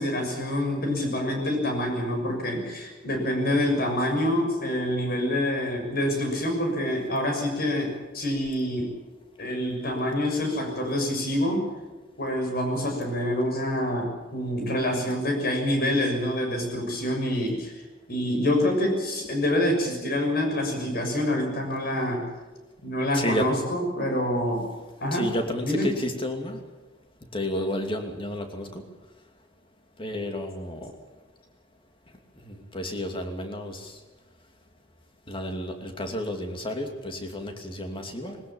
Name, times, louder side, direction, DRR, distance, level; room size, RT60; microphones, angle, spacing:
voice 1, 0.0-8.9 9.4-11.7 12.2-17.7 18.1-22.2 22.8-24.7 25.0-25.3 25.6-25.9, left 1 dB, 50° left, 3 dB, 6.5 m, -26 dB
voice 2, 23.1-23.5 25.1-26.6 27.3-28.8 30.0-30.9 32.4-34.0 35.3-38.4, left 1 dB, 25° left, 4 dB, 2.7 m, -31 dB
21.0 x 20.0 x 7.3 m, 1.2 s
head